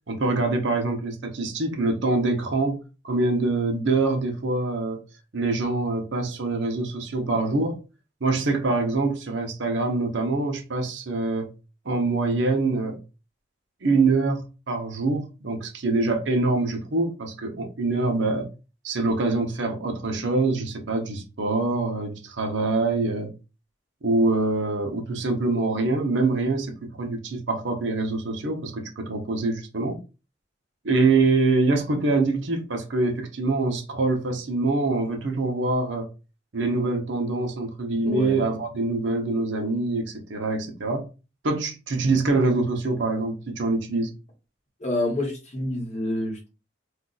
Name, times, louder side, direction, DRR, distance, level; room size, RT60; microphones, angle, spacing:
voice 1, 0.1-5.0 5.3-7.8 8.2-11.5 11.9-13.0 13.8-14.4 14.7-18.5 18.8-23.3 24.0-30.0 30.8-36.1 36.5-41.1 41.4-44.1, right 3 dB, 80° right, 0.7 m, -24 dB
voice 2, 37.9-38.4 44.8-46.5, left 1 dB, 35° left, 1.0 m, -28 dB
2.6 x 2.3 x 3.8 m
head